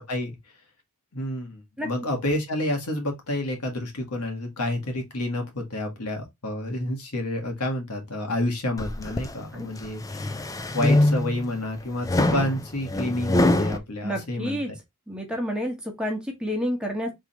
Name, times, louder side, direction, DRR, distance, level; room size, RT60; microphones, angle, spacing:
voice 1, 1.1-10.4 10.7-14.6, left 1 dB, 80° left, 1.6 m, -29 dB
sound 1, 8.8-9.3 9.8-11.5 12.0-13.8, left 1 dB, 15° left, 0.4 m, -23 dB
voice 2, 14.0-14.7 15.1-17.1, equal, 5° right, 1.2 m, -29 dB
3.6 x 3.3 x 4.2 m
head